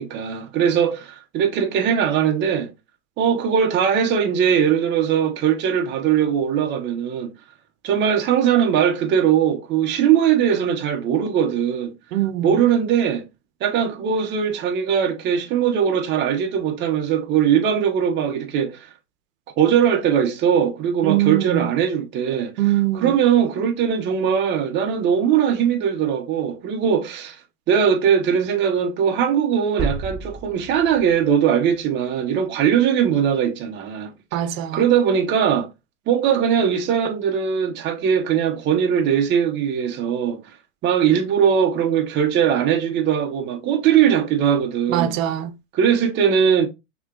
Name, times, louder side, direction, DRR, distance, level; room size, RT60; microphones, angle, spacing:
voice 1, 0.0-2.7 3.2-7.3 7.8-11.9 12.4-13.2 13.6-18.9 19.6-22.5 23.0-27.4 27.7-34.1 34.7-35.7 36.1-40.4 40.8-45.2 45.7-46.7, right 8 dB, 25° right, 0.8 m, -20 dB
voice 2, 12.1-12.5 21.0-21.7 22.6-23.2 34.3-34.8 44.9-45.6, right 13 dB, 70° right, 0.8 m, -22 dB
sound 1, 29.8-31.8, right 3 dB, 5° right, 3.0 m, -30 dB
5.9 x 3.0 x 2.4 m
supercardioid pair, 140°, 42 cm